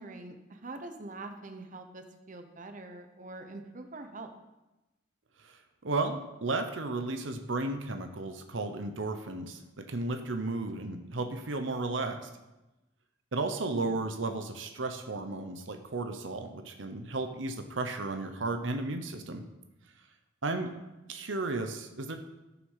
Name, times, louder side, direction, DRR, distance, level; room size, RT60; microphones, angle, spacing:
voice 1, 0.0-4.3 10.7-11.2 13.7-14.0 20.6-20.7, right 2 dB, 45° right, 6 dB, 1.0 m, -44 dB
voice 2, 5.8-12.3 13.3-19.4 20.4-20.7 21.1-22.2, right 3 dB, 80° right, 6 dB, 0.9 m, -34 dB
13.0 x 6.0 x 5.7 m, 1.0 s
head